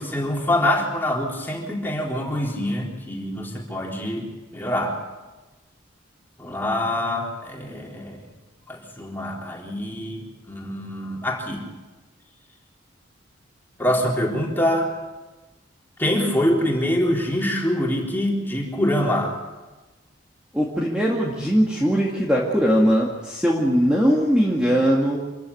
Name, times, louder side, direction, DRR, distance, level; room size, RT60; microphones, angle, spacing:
voice 1, 0.0-4.3 4.5-5.0 6.4-8.3 8.7-11.6 13.8-14.9 16.0-19.4, left 1 dB, 10° left, -2 dB, 4.1 m, -25 dB
voice 2, 20.5-25.2, equal, 5° right, -3 dB, 2.3 m, -20 dB
27.0 x 14.5 x 8.7 m, 1.2 s
head